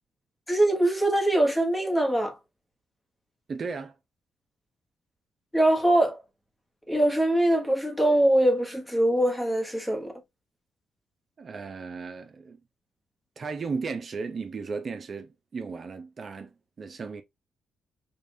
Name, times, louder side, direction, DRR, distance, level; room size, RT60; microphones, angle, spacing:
voice 1, 0.5-2.4 5.5-6.2 6.9-10.1, right 1 dB, 5° left, 1.1 m, -23 dB
voice 2, 3.5-3.9 11.4-12.6 13.4-17.2, right 4 dB, 40° right, 0.7 m, -35 dB
5.1 x 2.5 x 2.7 m
cardioid pair, 110°, 0 cm